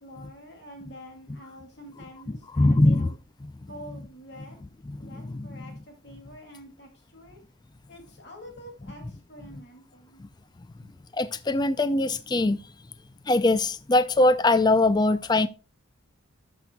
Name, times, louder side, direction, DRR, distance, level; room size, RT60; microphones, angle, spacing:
voice 1, 0.0-3.2 3.7-4.6 5.0-7.4 7.9-10.2, equal, 55° left, 2.5 m, -47 dB
voice 2, 2.5-3.1 5.2-5.5 11.2-12.6 13.3-15.5, left 2 dB, 20° left, 0.4 m, -21 dB
13.0 x 6.0 x 2.2 m
head